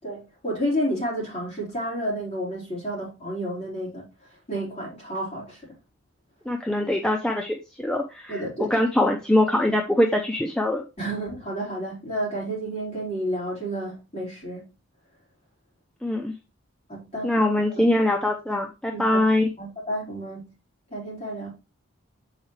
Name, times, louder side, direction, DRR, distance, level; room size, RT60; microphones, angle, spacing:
voice 1, 0.0-5.7 8.3-8.8 11.0-14.7 16.9-17.5 18.9-19.2 19.6-20.5 20.9-21.5, equal, 30° left, 4.1 m, -31 dB
voice 2, 6.5-10.8 16.0-16.3 17.2-19.5, left 1 dB, 5° left, 0.5 m, -23 dB
7.3 x 4.4 x 3.1 m
head